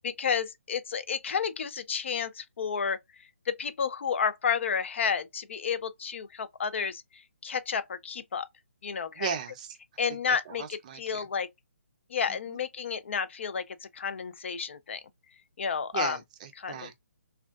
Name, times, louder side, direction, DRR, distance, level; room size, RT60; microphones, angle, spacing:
voice 1, 0.0-3.0 3.5-8.5 8.8-9.4 10.0-11.5 12.1-15.0 15.6-16.2 16.6-16.9, left 6 dB, 55° left, 0.4 m, -31 dB
voice 2, 9.2-9.7 10.3-11.2 12.3-12.6 15.9-17.0, right 8 dB, 30° right, 0.5 m, -37 dB
3.5 x 2.3 x 2.3 m
hypercardioid pair, 160°, 8 cm